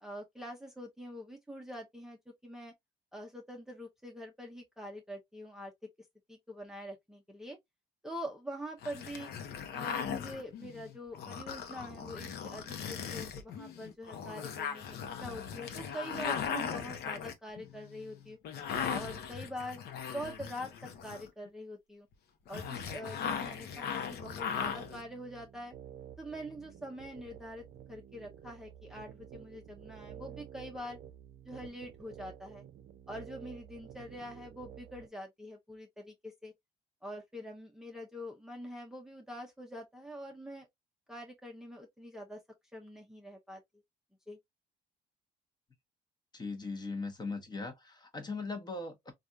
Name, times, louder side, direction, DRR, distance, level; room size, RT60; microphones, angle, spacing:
voice 1, 0.0-2.7 3.1-5.7 6.3-7.6 8.0-9.3 9.7-18.4 18.9-19.8 20.1-22.1 22.5-25.7 26.2-31.0 31.4-32.6 33.1-36.5 37.0-40.7 41.1-42.4 42.7-43.6 44.3-44.4, equal, 5° right, 0.6 m, -44 dB
sound 1, 8.8-21.5 22.5-25.0, left 7 dB, 70° left, 0.8 m, -38 dB
sound 2, 24.3-35.1, right 10 dB, 60° right, 0.6 m, -51 dB
voice 2, 46.3-49.1, left 3 dB, 25° left, 0.9 m, -39 dB
3.3 x 2.4 x 2.5 m
cardioid pair, 110°, 17 cm